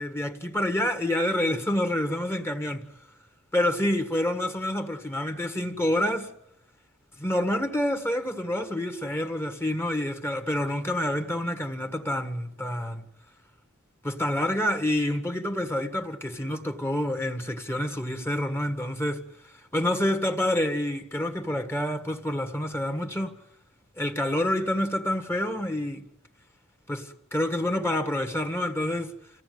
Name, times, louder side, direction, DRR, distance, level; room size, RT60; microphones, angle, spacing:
voice 1, 0.0-2.8 3.5-6.3 7.2-13.0 14.0-19.2 19.7-23.4 24.0-26.0 26.9-29.1, left 1 dB, 10° left, 1.7 m, -28 dB
29.0 x 16.5 x 9.4 m
head